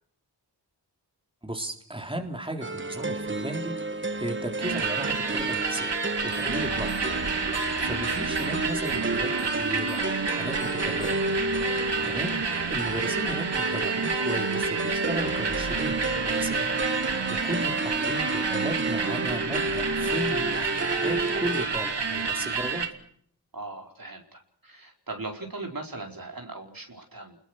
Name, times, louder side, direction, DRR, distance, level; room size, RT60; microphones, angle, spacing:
voice 1, 1.4-6.0 6.2-6.9 7.3-11.2 12.0-16.7 17.0-22.8, right 1 dB, 10° right, 3 dB, 3.8 m, -35 dB
sound 1, 2.6-21.7, right 2 dB, 30° right, 1.2 m, -31 dB
sound 2, 4.6-22.9, right 5 dB, 80° right, 2.3 m, -29 dB
sound 3, 6.3-6.6 6.8-7.8 8.1-11.3, left 8 dB, 70° left, 5.6 m, -50 dB
voice 2, 11.7-12.2 23.5-27.4, right 2 dB, 55° right, 2 dB, 4.6 m, -39 dB
28.5 x 21.5 x 6.4 m, 0.63 s
wide cardioid pair, 50°, 41 cm